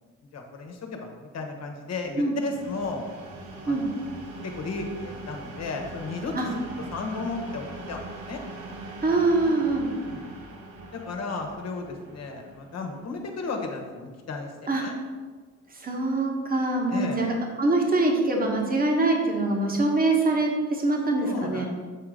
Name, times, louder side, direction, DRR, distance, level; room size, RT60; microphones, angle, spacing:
voice 1, 0.3-3.1 3.6-3.8 4.4-6.6 6.9-8.4 9.4-9.5 10.1-10.3 10.9-14.5 14.8-15.0 16.9-17.2 21.2-21.7, left 3 dB, 60° left, 3 dB, 1.2 m, -34 dB
sound 1, 2.5-14.1, right 2 dB, 80° right, 1.1 m, -42 dB
voice 2, 9.0-9.9 14.7-14.8 15.7-21.7, right 2 dB, 30° right, 1 dB, 1.4 m, -24 dB
7.4 x 3.7 x 5.0 m, 1.4 s
cardioid pair, 90°, 30 cm